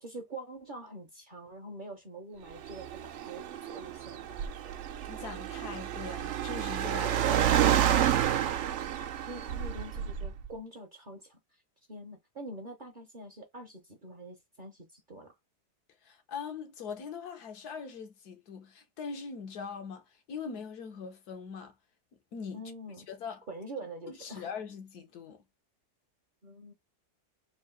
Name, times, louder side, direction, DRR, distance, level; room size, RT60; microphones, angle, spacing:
voice 1, 0.0-4.7 9.3-11.6 11.9-15.3 22.5-23.1 23.5-24.5 26.4-26.7, right 1 dB, 40° right, 0.8 m, -45 dB
Car, 2.5-10.5, right 10 dB, 65° right, 0.7 m, -29 dB
voice 2, 5.1-7.5 16.0-21.7 22.3-22.6 23.1-23.4 24.1-25.4, left 6 dB, 75° left, 1.4 m, -41 dB
3.8 x 2.6 x 3.8 m
omnidirectional pair, 1.7 m